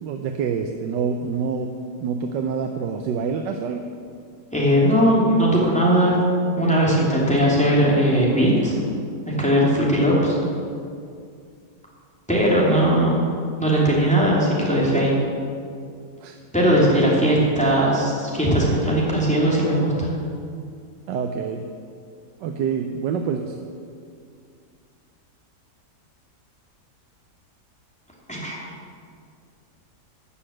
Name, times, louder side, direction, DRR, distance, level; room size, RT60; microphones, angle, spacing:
voice 1, 0.0-1.7 2.0-3.8 12.7-12.8 16.2-16.4 21.1-21.6 22.4-23.6, right 6 dB, 85° right, 5 dB, 1.4 m, -26 dB
voice 2, 4.5-6.2 6.6-8.8 9.2-10.4 12.3-13.2 13.6-15.1 16.5-20.1 28.3-28.6, equal, 5° left, -5 dB, 2.8 m, -19 dB
13.0 x 6.6 x 8.7 m, 2.3 s
omnidirectional pair, 1.9 m